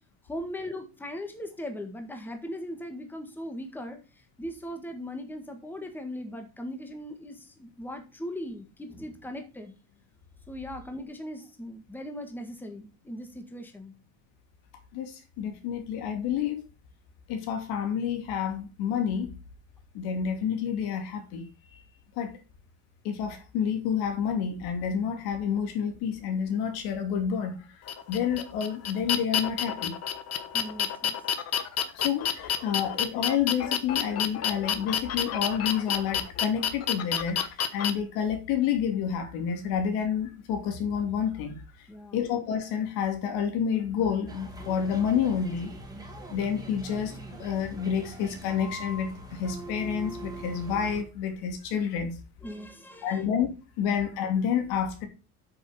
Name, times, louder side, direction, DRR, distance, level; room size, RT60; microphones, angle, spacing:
voice 1, 0.2-4.0 4.4-9.7 10.5-13.9 30.5-31.2 41.9-42.2 52.4-53.3, left 1 dB, 5° left, 1.6 m, -39 dB
voice 2, 14.9-16.6 17.3-19.3 19.9-21.5 22.2-22.3 23.0-30.0 31.9-41.9 42.1-45.7 46.3-52.2 53.0-53.5 53.8-55.1, left 8 dB, 75° left, 2.9 m, -29 dB
sound 1, 27.9-37.9, left 8 dB, 40° left, 1.2 m, -29 dB
sound 2, 44.3-51.0, right 1 dB, 10° right, 2.3 m, -42 dB
8.1 x 6.6 x 5.3 m
cardioid pair, 150°, 37 cm